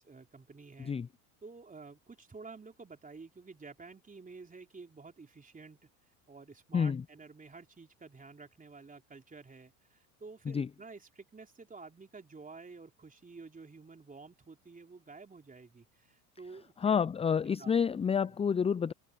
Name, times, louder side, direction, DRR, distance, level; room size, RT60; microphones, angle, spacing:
voice 1, 0.0-0.9 1.4-5.8 6.3-17.0 17.4-17.7 18.2-18.4, right 4 dB, 15° right, 3.5 m, -51 dB
voice 2, 16.8-18.9, left 6 dB, 15° left, 0.5 m, -29 dB
hypercardioid pair, 85°, 46 cm